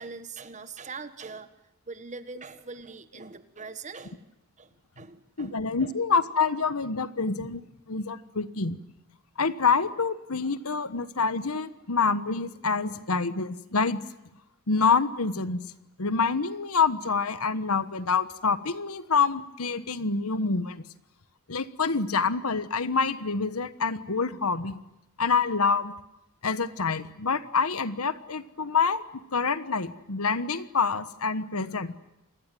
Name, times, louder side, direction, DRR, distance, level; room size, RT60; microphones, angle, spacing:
voice 1, 0.0-1.5 1.9-4.2 4.6-5.9, right 4 dB, 35° right, 11 dB, 1.4 m, -42 dB
voice 2, 5.4-7.6 7.9-8.8 9.4-14.0 14.7-15.6 16.0-20.8 21.5-24.8 25.2-25.9 26.4-29.0 29.3-31.9, left 5 dB, 80° left, 14 dB, 1.3 m, -26 dB
27.5 x 20.0 x 9.2 m, 0.90 s
head